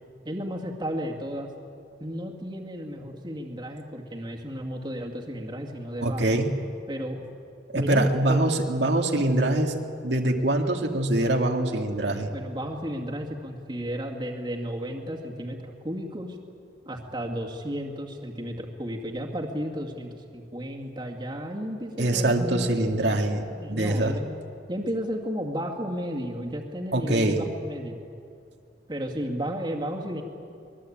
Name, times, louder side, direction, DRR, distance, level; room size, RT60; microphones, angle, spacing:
voice 1, 0.2-1.5 2.0-6.4 6.9-7.2 7.7-8.4 12.3-16.4 16.9-22.7 23.6-24.4 24.7-28.0 28.9-30.2, equal, 25° right, 0 dB, 2.2 m, -33 dB
voice 2, 6.0-6.5 7.7-9.7 10.0-12.3 22.0-24.1 26.9-27.4, right 1 dB, 75° right, 2 dB, 2.1 m, -24 dB
24.5 x 21.5 x 8.8 m, 2.5 s
head